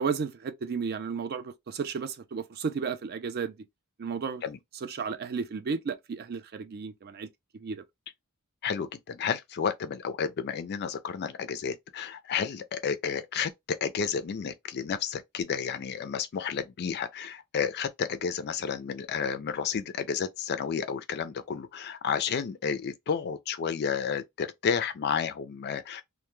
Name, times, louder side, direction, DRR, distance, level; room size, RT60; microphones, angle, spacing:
voice 1, 0.0-3.6 4.0-4.4 4.8-7.3 7.6-7.8, right 5 dB, 45° right, 0.3 m, -33 dB
voice 2, 8.6-26.0, left 6 dB, 45° left, 0.3 m, -31 dB
2.2 x 2.1 x 3.0 m
head